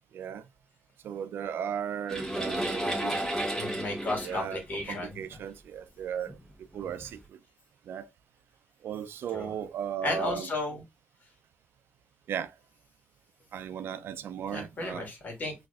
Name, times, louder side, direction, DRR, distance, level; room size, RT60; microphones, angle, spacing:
voice 1, 0.1-0.4 1.0-3.2 4.2-6.4 6.7-7.4 7.9-8.1 8.8-10.5 12.3-12.5 13.5-15.1, right 8 dB, 90° right, 0.4 m, -36 dB
sound 1, 2.1-5.4 6.3-6.4 7.0-7.1, right 1 dB, 10° left, 1.6 m, -32 dB
voice 2, 3.6-5.4 9.3-9.5 10.0-10.8 14.5-15.5, left 2 dB, 50° left, 1.8 m, -34 dB
4.0 x 3.2 x 2.4 m
wide cardioid pair, 125°, 4 cm